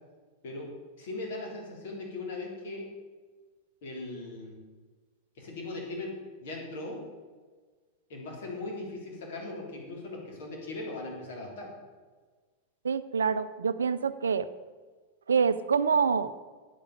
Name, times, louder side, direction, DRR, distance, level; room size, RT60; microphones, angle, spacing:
voice 1, 1.0-2.8 3.8-4.5 5.4-6.1 6.4-7.0 8.1-11.7, left 2 dB, 55° left, -1 dB, 3.7 m, -39 dB
voice 2, 12.8-14.5 15.3-16.3, right 6 dB, 70° right, 14 dB, 0.5 m, -26 dB
9.2 x 8.7 x 8.2 m, 1.4 s
figure-of-eight pair, 90°, 0 cm